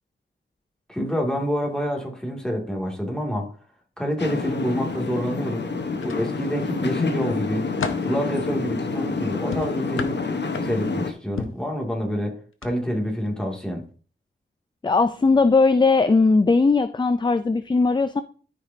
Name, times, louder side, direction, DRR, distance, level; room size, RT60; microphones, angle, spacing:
voice 1, 0.9-3.5 4.0-5.6 6.0-7.7 8.0-10.2 10.6-13.8, equal, 5° left, 0 dB, 2.4 m, -27 dB
sound 1, 4.2-11.1, left 4 dB, 60° left, 1.1 m, -28 dB
sound 2, 6.0-6.8 7.3-8.2 9.5-11.0 11.4-11.7 12.5-12.7 13.1-13.3, left 5 dB, 80° left, 0.8 m, -34 dB
voice 2, 14.8-18.2, left 3 dB, 20° left, 11 dB, 0.4 m, -18 dB
13.0 x 5.0 x 2.7 m, 0.41 s
wide cardioid pair, 85°, 21 cm